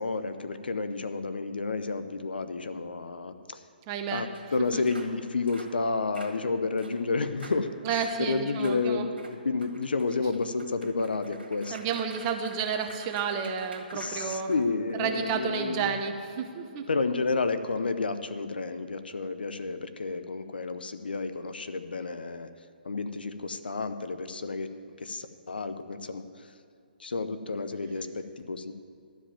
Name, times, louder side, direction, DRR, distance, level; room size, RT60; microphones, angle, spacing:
voice 1, 0.0-3.6 4.1-11.8 13.9-16.0 16.9-22.5 22.8-24.7 25.0-26.5 27.0-28.7, left 4 dB, 75° left, 10 dB, 0.7 m, -31 dB
voice 2, 3.9-4.2 4.7-4.8 7.8-9.1 11.7-14.5 15.0-16.9, right 6 dB, 30° right, 5 dB, 1.0 m, -31 dB
sound 1, 4.3-4.4 4.8-5.1 5.5-5.7 6.1-6.4 6.8-7.0 7.4-7.6 8.0-8.2 8.6-8.8 9.2-14.9, right 3 dB, 85° right, 1.9 m, -48 dB
12.5 x 5.1 x 8.8 m, 2.3 s
figure-of-eight pair, 135°, 5 cm